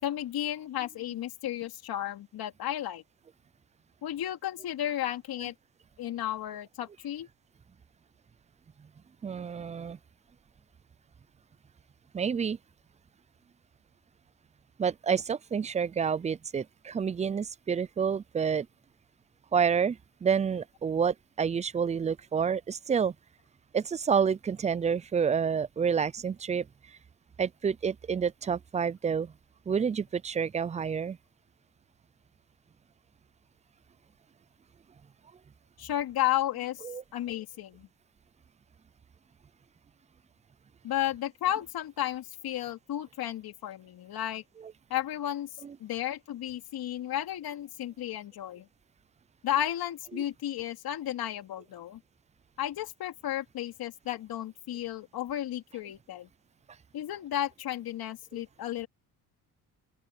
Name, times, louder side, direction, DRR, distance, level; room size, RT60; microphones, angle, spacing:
voice 1, 0.0-3.0 4.0-5.5 6.0-7.3 35.8-36.8 37.1-37.9 40.8-44.4 44.9-45.5 45.8-48.7 49.4-52.0 52.6-56.3 56.9-58.9, left 12 dB, 65° left, 2.8 m, -33 dB
voice 2, 9.2-10.0 12.1-12.6 14.8-18.7 19.5-23.1 23.7-26.6 27.4-29.3 29.7-31.2 36.8-37.0 45.6-45.7 50.1-50.2, right 6 dB, 20° right, 0.4 m, -29 dB
open air
cardioid pair, 90°, 40 cm